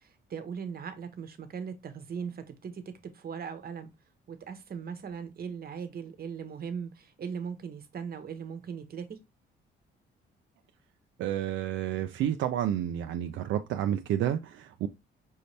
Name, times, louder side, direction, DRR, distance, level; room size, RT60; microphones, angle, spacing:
voice 1, 0.0-3.9 4.3-9.2, right 6 dB, 50° right, 1.0 m, -39 dB
voice 2, 11.2-14.9, right 11 dB, 80° right, 0.5 m, -30 dB
5.5 x 2.7 x 3.2 m
cardioid pair, 90°, 20 cm